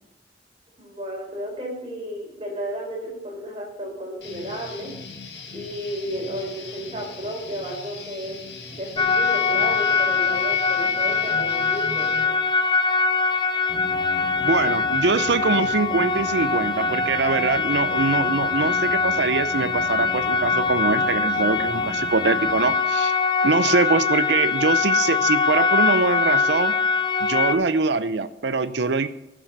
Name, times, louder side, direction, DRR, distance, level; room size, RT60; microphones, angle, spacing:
voice 1, 0.8-4.9 5.5-8.4 8.7-12.3 23.4-23.6, equal, 30° right, -2 dB, 4.1 m, -33 dB
Guitar, 4.2-12.2, left 4 dB, 75° left, 2.2 m, -40 dB
sound 1, 9.0-27.6, left 4 dB, 25° left, 0.7 m, -23 dB
sound 2, 13.7-22.7, left 1 dB, 45° left, 1.6 m, -38 dB
voice 2, 14.4-23.1 23.4-26.8 27.2-29.1, right 4 dB, 80° right, 13 dB, 0.6 m, -23 dB
13.0 x 6.2 x 6.7 m, 0.90 s
head